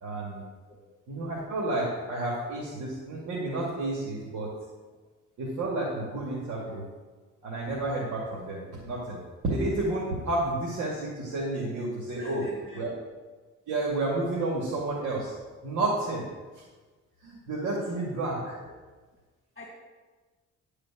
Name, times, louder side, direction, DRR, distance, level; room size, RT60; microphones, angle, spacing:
voice 1, 0.0-0.4 1.1-4.5 5.4-6.8 7.4-12.4 12.8-12.9 13.7-15.3 15.6-16.2 17.2-18.5, right 2 dB, 75° right, -5 dB, 2.4 m, -31 dB
voice 2, 12.2-12.9 19.6-19.7, left 2 dB, 20° left, -1 dB, 2.0 m, -44 dB
11.0 x 5.0 x 7.3 m, 1.3 s
cardioid pair, 90°, 30 cm